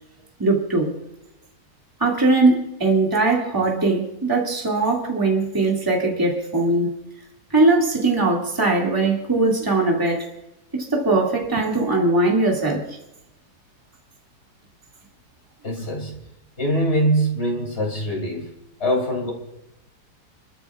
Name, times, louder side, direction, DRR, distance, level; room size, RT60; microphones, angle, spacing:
voice 1, 0.4-0.9 2.0-6.9 7.5-10.3 10.7-12.8, right 2 dB, 10° right, 2.2 m, -20 dB
voice 2, 15.6-16.2 16.6-18.5 18.8-19.3, right 1 dB, 40° left, 3.1 m, -23 dB
30.0 x 13.0 x 2.4 m
omnidirectional pair, 1.8 m